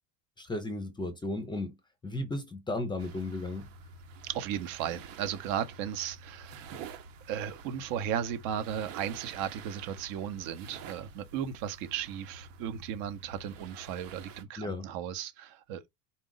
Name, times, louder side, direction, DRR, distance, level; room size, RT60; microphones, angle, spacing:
voice 1, 0.4-1.8 2.0-3.7 14.6-14.9, left 2 dB, 10° left, 0.6 m, -34 dB
sound 1, 3.0-14.4, right 5 dB, 75° right, 1.1 m, -48 dB
voice 2, 4.2-6.9 7.3-15.9, right 9 dB, 55° right, 0.9 m, -35 dB
4.1 x 2.5 x 3.8 m
supercardioid pair, 145°, 40 cm